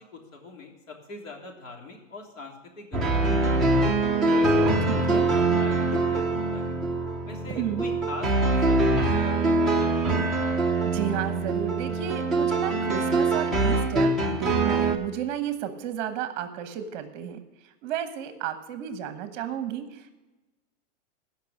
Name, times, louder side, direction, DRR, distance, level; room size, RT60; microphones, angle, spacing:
voice 1, 0.0-3.9 4.3-6.7 7.2-10.2, left 2 dB, 80° left, 1 dB, 3.4 m, -42 dB
sound 1, 2.9-15.0, right 2 dB, ahead, 0.5 m, -24 dB
voice 2, 4.9-5.3 7.5-7.9 10.8-17.4 17.8-20.2, right 9 dB, 35° right, 9 dB, 1.1 m, -32 dB
16.0 x 5.8 x 6.4 m, 1.1 s
supercardioid pair, 155°, 39 cm